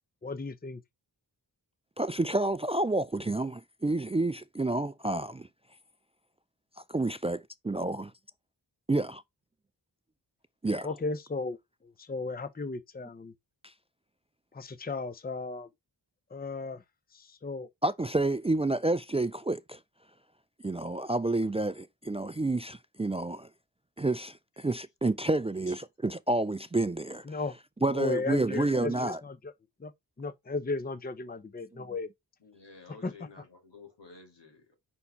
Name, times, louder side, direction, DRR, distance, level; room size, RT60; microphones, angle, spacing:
voice 1, 0.2-0.8 10.8-11.6 11.8-13.3 14.5-15.7 16.3-16.8 17.1-17.7 27.3-27.6 27.9-29.5 29.8-29.9 30.2-32.1 33.0-33.1, left 3 dB, 20° left, 0.7 m, -35 dB
voice 2, 2.0-5.5 6.9-8.1 8.9-9.2 10.6-10.9 13.6-13.7 17.8-19.8 20.6-23.5 24.0-27.4 27.8-29.2 31.7-31.9, right 2 dB, 15° right, 0.4 m, -29 dB
voice 3, 32.4-34.7, left 4 dB, 80° left, 2.5 m, -52 dB
5.6 x 4.4 x 4.0 m
cardioid pair, 55°, 42 cm